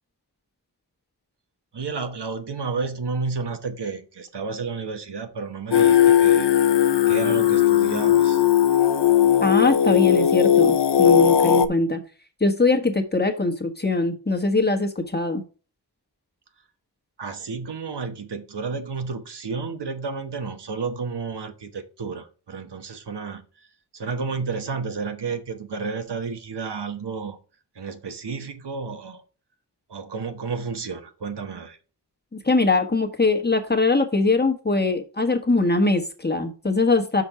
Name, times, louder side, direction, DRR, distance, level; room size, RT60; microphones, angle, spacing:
voice 1, 1.7-6.5 7.1-8.4 17.2-23.4 23.9-27.4 27.8-29.2 29.9-31.8, right 4 dB, 80° right, 1.1 m, -31 dB
Singing, 5.7-11.7, left 10 dB, 80° left, 0.7 m, -17 dB
voice 2, 9.4-12.0 12.4-15.4 32.3-37.2, left 3 dB, 25° left, 1.3 m, -22 dB
6.0 x 4.4 x 5.7 m
wide cardioid pair, 90°, 40 cm